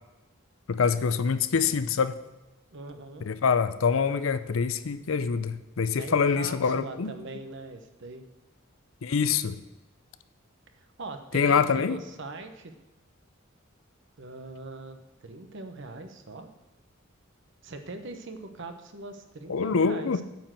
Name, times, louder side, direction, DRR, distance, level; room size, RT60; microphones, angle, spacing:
voice 1, 0.7-2.1 3.2-7.1 9.0-9.6 11.3-12.0 19.5-20.2, left 5 dB, 75° left, 13 dB, 0.5 m, -25 dB
voice 2, 2.7-3.3 6.0-8.3 10.8-12.7 14.2-16.5 17.6-20.2, right 3 dB, 65° right, 7 dB, 1.0 m, -41 dB
9.2 x 4.5 x 7.5 m, 1.1 s
head